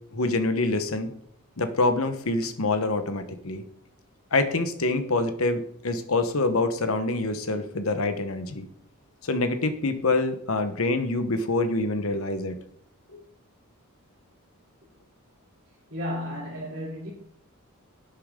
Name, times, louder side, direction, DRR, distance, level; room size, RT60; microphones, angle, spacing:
voice 1, 0.1-1.1 1.6-3.6 4.3-8.7 9.2-12.6 13.1-13.2, left 2 dB, 75° left, 1.2 m, -26 dB
voice 2, 15.9-17.1, equal, 60° right, 3.4 m, -33 dB
11.5 x 8.5 x 3.8 m
head